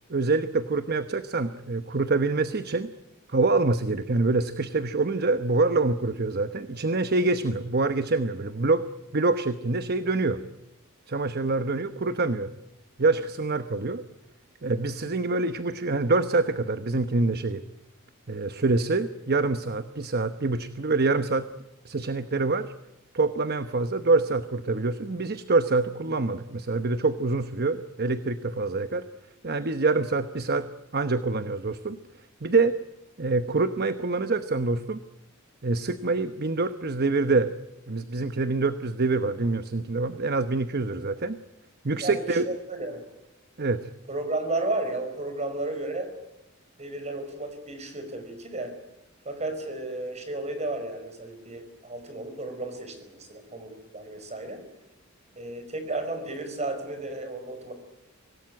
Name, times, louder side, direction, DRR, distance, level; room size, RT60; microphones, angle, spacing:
voice 1, 0.1-2.9 3.3-8.9 9.1-10.4 11.1-12.5 13.0-14.0 14.6-17.6 18.3-21.5 21.8-22.7 23.1-29.0 29.4-30.7 30.9-32.0 32.4-32.7 33.2-35.0 35.6-37.5 37.9-41.4 41.8-42.5 43.6-43.9, right 3 dB, 50° right, 11 dB, 1.0 m, -25 dB
voice 2, 42.0-43.0 44.1-46.1 46.8-48.8 49.3-54.7 55.4-57.7, right 2 dB, 35° right, 8 dB, 5.1 m, -33 dB
25.5 x 18.0 x 9.6 m, 0.89 s
head